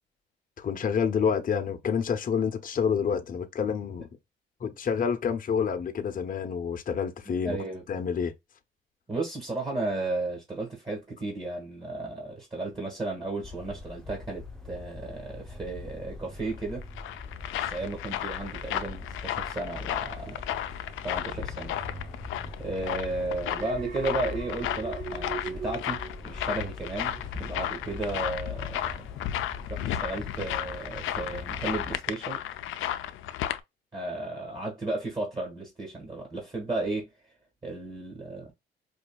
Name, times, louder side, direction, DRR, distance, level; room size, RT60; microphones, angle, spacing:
voice 1, 0.6-4.1 4.6-7.6 7.9-8.3, left 6 dB, 45° left, 0.8 m, -28 dB
voice 2, 7.4-7.8 9.1-16.8 17.6-20.4 21.0-21.8 22.6-29.1 29.7-32.4 33.9-37.3 37.6-38.5, right 2 dB, 25° right, 1.9 m, -34 dB
sound 1, 13.4-32.0, left 3 dB, 5° left, 1.0 m, -42 dB
sound 2, 16.6-33.6, left 12 dB, 85° left, 0.5 m, -34 dB
Alarm, 23.5-26.8 27.2-27.5, right 6 dB, 45° right, 0.9 m, -39 dB
5.1 x 2.7 x 2.3 m
cardioid pair, 90°, 20 cm